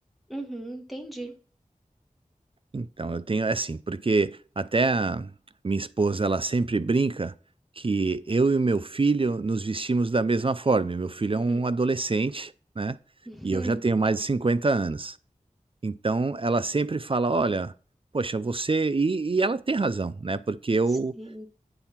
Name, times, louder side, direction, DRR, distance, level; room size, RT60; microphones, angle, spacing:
voice 1, 0.3-1.3 11.3-11.6 13.2-13.8 21.2-21.5, right 1 dB, ahead, 1.6 m, -37 dB
voice 2, 2.7-5.3 5.6-7.3 7.8-13.0 13.4-15.2 15.8-17.7 18.1-21.2, right 3 dB, 40° right, 0.4 m, -25 dB
9.0 x 4.4 x 5.9 m
wide cardioid pair, 60°, 14 cm